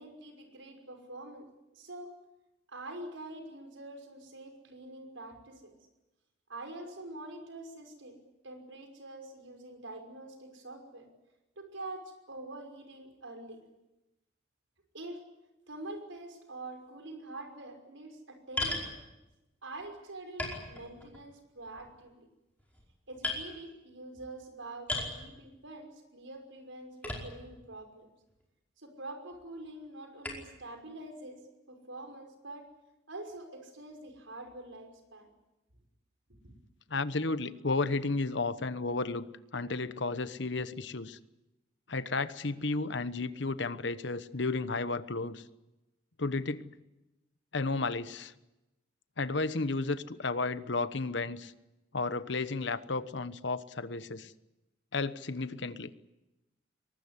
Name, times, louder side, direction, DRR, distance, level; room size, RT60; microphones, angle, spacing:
voice 1, 0.0-1.5 1.7-2.1 2.7-5.7 6.5-8.2 8.4-11.1 11.6-13.6 14.9-15.2 15.7-19.0 19.6-22.3 23.1-28.1 28.8-31.4 31.7-32.7 33.1-35.3 36.4-36.5, right 2 dB, 85° right, 5 dB, 5.8 m, -45 dB
sound 1, 18.6-18.9 19.8-19.9 20.4-21.2 21.6-22.0 22.6-22.9 23.2-23.4 24.9-25.2 27.0-27.6 28.3-28.4 30.2-30.5, left 1 dB, 10° left, 4.9 m, -36 dB
voice 2, 36.9-39.3 39.5-41.2 41.9-45.4 46.2-46.8 47.5-48.3 49.2-51.5 51.9-54.3 54.9-55.9, left 3 dB, 70° left, 13 dB, 1.1 m, -33 dB
23.5 x 19.5 x 9.8 m, 0.98 s
head